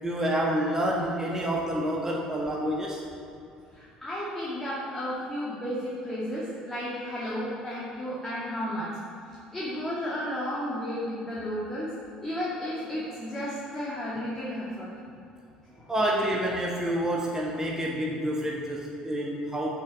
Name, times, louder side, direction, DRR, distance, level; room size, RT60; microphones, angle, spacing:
voice 1, 0.0-3.0 15.9-19.7, right 1 dB, 15° right, -2 dB, 1.5 m, -28 dB
voice 2, 3.7-8.9 9.5-11.9 12.2-14.9 15.7-15.9, equal, 15° left, -8 dB, 2.4 m, -33 dB
7.8 x 6.7 x 7.0 m, 2.6 s
figure-of-eight pair, 60°, 4 cm